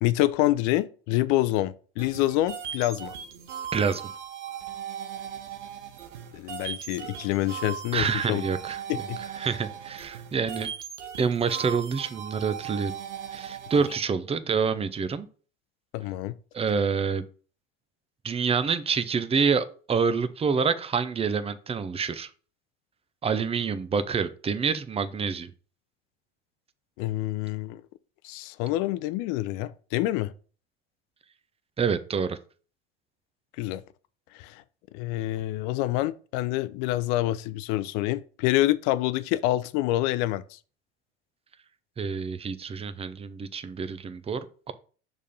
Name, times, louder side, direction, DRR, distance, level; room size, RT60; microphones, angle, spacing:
voice 1, 0.0-3.1 6.3-8.5 8.9-9.2 15.9-16.4 27.0-27.8 28.2-30.3 33.6-33.8 34.3-34.6 34.9-40.6, left 16 dB, 55° left, 0.6 m, -27 dB
sound 1, 2.0-14.0, right 9 dB, 85° right, 0.9 m, -38 dB
voice 2, 7.9-8.8 9.4-10.7 11.2-12.9 13.3-15.3 16.5-17.2 18.2-22.3 23.2-25.5 31.8-32.4 42.0-44.4 44.7-44.8, right 5 dB, 15° right, 0.6 m, -27 dB
6.5 x 3.5 x 5.3 m
hypercardioid pair, 80°, 34 cm